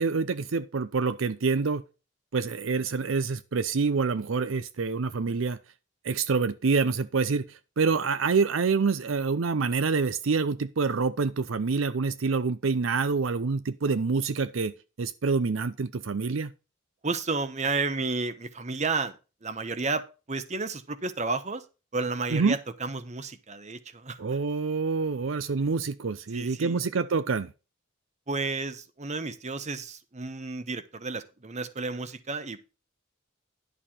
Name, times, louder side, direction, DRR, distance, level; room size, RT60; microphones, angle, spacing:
voice 1, 0.0-1.8 2.3-5.6 6.0-16.5 22.3-22.6 24.2-27.5, right 4 dB, 70° right, 0.6 m, -27 dB
voice 2, 17.0-19.2 19.4-21.6 21.9-24.2 26.3-26.8 28.3-32.6, right 3 dB, 35° right, 1.0 m, -32 dB
11.0 x 6.9 x 4.3 m
head